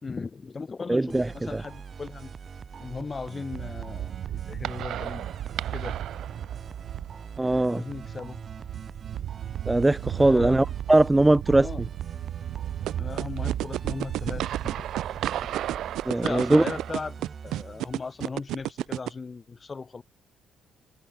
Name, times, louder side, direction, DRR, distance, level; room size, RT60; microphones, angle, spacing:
voice 1, 0.0-2.3 2.8-5.3 5.7-6.0 7.3-8.4 10.1-10.7 11.6-11.8 13.0-14.9 16.1-17.2 17.4-20.0, left 4 dB, 20° left, 5.4 m, -37 dB
voice 2, 0.9-1.6 7.4-7.8 9.7-11.9 16.1-16.6, right 2 dB, 10° right, 0.3 m, -21 dB
sound 1, 1.1-18.5, right 6 dB, 30° right, 3.7 m, -43 dB
sound 2, 3.5-16.9, right 12 dB, 65° right, 1.7 m, -34 dB
sound 3, 12.9-19.1, right 14 dB, 85° right, 0.7 m, -30 dB
cardioid pair, 160°, 0 cm